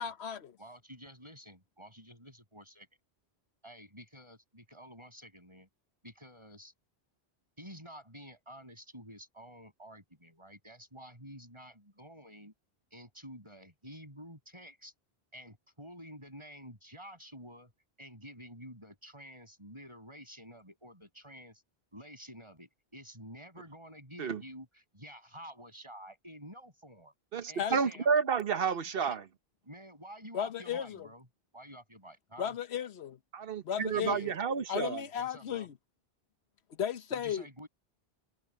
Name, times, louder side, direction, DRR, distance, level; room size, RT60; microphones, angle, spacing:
voice 1, 0.0-0.6 27.6-27.8 30.3-31.1 32.4-33.2 33.6-34.3 34.7-35.7 36.8-37.5, left 9 dB, 85° left, 1.2 m, -35 dB
voice 2, 0.6-2.9 3.6-5.7 6.0-6.7 7.6-12.5 12.9-14.9 15.3-17.7 18.0-21.6 21.9-27.1 27.5-28.1 28.7-29.2 29.6-31.3 31.5-32.5 33.9-34.3 35.1-35.7 37.1-37.7, equal, 25° right, 7.2 m, -50 dB
voice 3, 27.3-29.2 33.3-35.0, right 6 dB, 65° right, 1.1 m, -30 dB
omnidirectional pair, 1.1 m